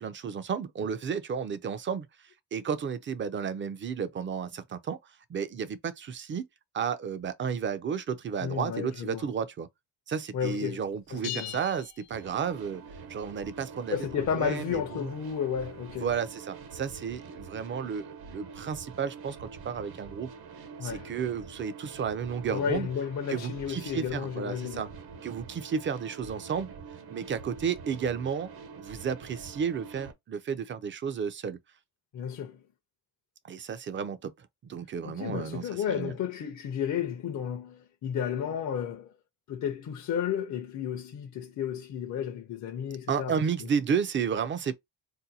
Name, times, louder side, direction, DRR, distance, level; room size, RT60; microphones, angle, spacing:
voice 1, 0.0-6.5 6.7-9.7 10.1-12.8 13.1-15.1 16.0-20.3 20.8-22.9 23.3-24.9 25.2-26.7 27.1-28.5 28.8-31.6 33.4-36.1 43.1-44.7, right 7 dB, 30° right, 0.4 m, -32 dB
voice 2, 8.4-9.2 10.3-10.8 11.1-11.6 13.9-16.1 20.8-21.1 22.5-24.9 32.1-32.6 35.1-39.1 39.5-43.7, left 8 dB, 50° left, 0.6 m, -32 dB
sound 1, 11.2-12.8, left 12 dB, 75° left, 0.8 m, -41 dB
sound 2, 12.1-30.1, right 5 dB, 70° right, 1.1 m, -46 dB
2.7 x 2.1 x 4.0 m
cardioid pair, 135°, 39 cm